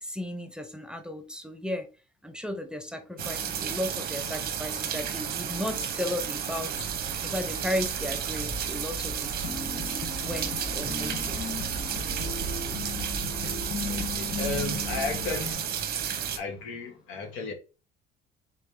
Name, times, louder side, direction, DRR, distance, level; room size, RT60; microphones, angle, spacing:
voice 1, 0.0-1.9 2.2-6.9 7.2-9.3 10.2-11.5, left 1 dB, 5° right, 0.6 m, -35 dB
sound 1, 3.2-16.4, right 8 dB, 50° right, 0.8 m, -32 dB
sound 2, 6.7-15.5, right 2 dB, 35° right, 1.1 m, -40 dB
sound 3, 7.8-15.3, left 5 dB, 35° left, 1.1 m, -38 dB
voice 2, 13.9-15.7 16.3-17.5, left 3 dB, 85° left, 1.3 m, -34 dB
4.1 x 3.4 x 3.3 m
cardioid pair, 115°, 20 cm